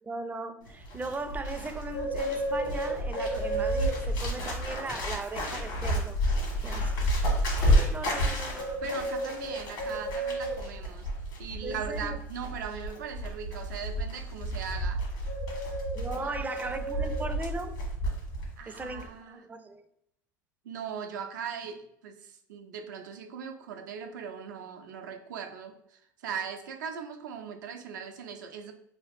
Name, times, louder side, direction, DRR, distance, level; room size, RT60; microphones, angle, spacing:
voice 1, 0.0-6.2 6.6-7.1 7.5-8.8 11.6-12.2 15.9-17.7 18.7-19.8, right 3 dB, 15° right, 0.4 m, -38 dB
Bird, 0.7-18.5 18.7-19.1, equal, 75° left, 1.3 m, -30 dB
voice 2, 8.8-11.1 11.4-15.0 16.2-16.4 18.6-19.5 20.6-28.7, right 7 dB, 80° right, 0.5 m, -39 dB
2.8 x 2.4 x 3.3 m
hypercardioid pair, 80°, 10 cm